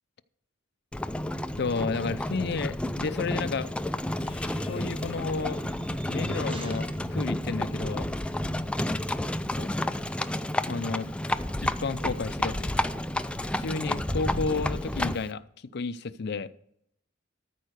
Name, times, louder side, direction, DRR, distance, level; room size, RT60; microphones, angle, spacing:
Livestock farm animals working animals, 0.9-15.3, left 1 dB, 5° left, 0.3 m, -31 dB
voice 1, 1.6-3.7 4.7-5.7 6.1-8.1 9.6-9.9 10.7-11.1 11.6-12.7 13.4-15.4 15.7-16.5, left 4 dB, 60° left, 13 dB, 0.5 m, -32 dB
sound 1, 4.2-10.3, left 1 dB, 30° left, 0.9 m, -49 dB
sound 2, 4.8-8.4, right 4 dB, 25° right, 1.0 m, -52 dB
13.5 x 4.7 x 6.6 m, 0.72 s
head